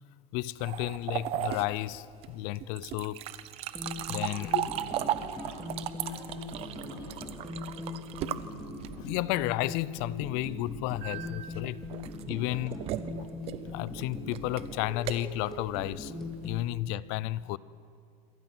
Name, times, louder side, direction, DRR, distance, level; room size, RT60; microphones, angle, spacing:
voice 1, 0.3-3.2 4.1-4.6 9.0-11.8 12.3-12.8 13.7-16.1 16.4-17.6, left 16 dB, 40° left, 0.5 m, -32 dB
sound 1, 0.6-9.2 11.0-16.7, right 12 dB, 30° right, 0.7 m, -36 dB
sound 2, 3.7-16.6, left 2 dB, ahead, 2.4 m, -40 dB
voice 2, 4.2-8.0 12.4-12.9, left 2 dB, 25° left, 6.2 m, -52 dB
27.0 x 24.0 x 6.0 m
supercardioid pair, 175°, 21 cm